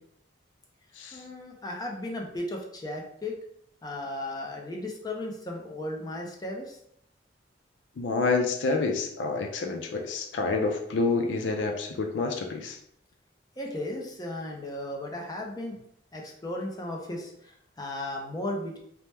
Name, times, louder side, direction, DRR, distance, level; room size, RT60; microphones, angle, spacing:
voice 1, 1.1-3.3 3.8-6.8 13.6-15.7 16.1-18.8, left 1 dB, 20° left, 0 dB, 0.5 m, -35 dB
voice 2, 8.0-12.8, left 3 dB, 90° left, 3 dB, 0.4 m, -28 dB
2.8 x 2.0 x 3.3 m, 0.71 s
head